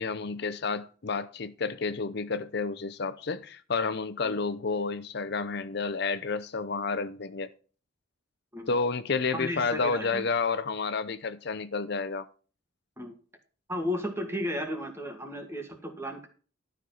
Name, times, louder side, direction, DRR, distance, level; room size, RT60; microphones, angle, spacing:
voice 1, 0.0-7.5 8.7-12.3, left 4 dB, 55° left, 0.6 m, -30 dB
voice 2, 9.3-10.2 13.0-13.1 13.7-16.3, left 1 dB, 15° right, 2.1 m, -34 dB
12.5 x 5.9 x 5.8 m
head